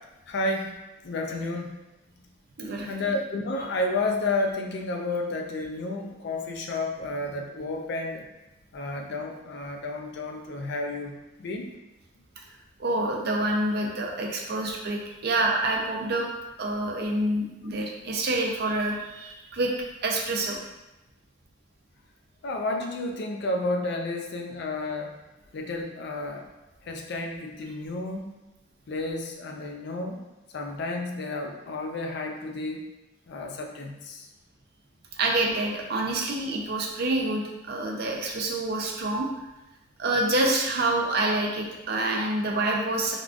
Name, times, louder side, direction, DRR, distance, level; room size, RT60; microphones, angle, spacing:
voice 1, 0.3-0.7 1.0-1.8 2.9-8.2 8.7-11.7 22.4-25.1 25.5-26.4 26.8-28.4 28.9-30.2 30.5-32.9 33.3-34.3, left 2 dB, 55° left, 2 dB, 0.4 m, -31 dB
voice 2, 2.6-2.9 12.8-16.3 16.6-19.7 20.0-20.6 35.2-39.3 40.0-43.2, right 2 dB, 50° right, 0 dB, 0.4 m, -27 dB
3.5 x 2.2 x 2.4 m, 1.0 s
head